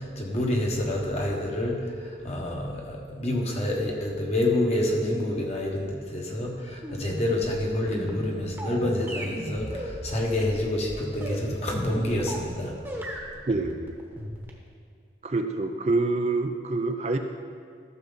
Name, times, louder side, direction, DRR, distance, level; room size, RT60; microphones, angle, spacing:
voice 1, 0.0-1.8 2.0-12.8, left 1 dB, 35° left, -1 dB, 1.3 m, -28 dB
sound 1, 6.8-12.5 12.8-14.7, equal, 10° right, 1.1 m, -36 dB
voice 2, 13.5-14.0 15.2-17.2, right 3 dB, 35° right, 6 dB, 0.4 m, -26 dB
13.5 x 6.7 x 4.0 m, 2.1 s
head